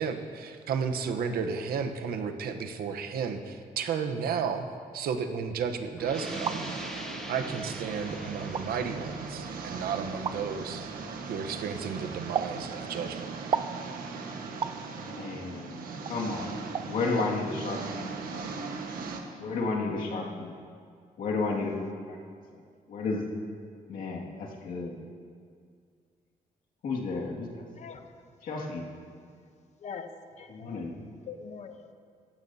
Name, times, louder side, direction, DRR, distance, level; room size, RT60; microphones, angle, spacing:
voice 1, 0.0-4.7 4.9-6.6 7.3-11.0 11.2-13.3, right 6 dB, 90° right, 6 dB, 0.9 m, -33 dB
sound 1, 6.0-11.4, equal, 5° left, 0.9 m, -44 dB
sound 2, 6.1-19.2, right 4 dB, 70° right, 1.3 m, -39 dB
sound 3, 6.2-6.6 7.5-7.6 8.4-8.7 10.2-10.4 12.3-12.6 13.5-13.8 14.6-14.8 16.1-16.2 16.7-16.9 17.2-17.3, right 7 dB, 35° right, 0.3 m, -31 dB
voice 2, 15.0-16.6 16.9-18.4 19.4-20.5 21.2-22.2 22.9-23.3 23.9-25.0 26.8-27.5 28.4-28.9 30.5-30.9, left 3 dB, 65° left, -2 dB, 2.1 m, -32 dB
voice 3, 27.8-28.2 28.5-28.7 29.8-30.7 31.3-31.9, left 6 dB, 50° left, 7 dB, 0.9 m, -43 dB
18.5 x 14.5 x 2.8 m, 2.1 s
wide cardioid pair, 175°, 15 cm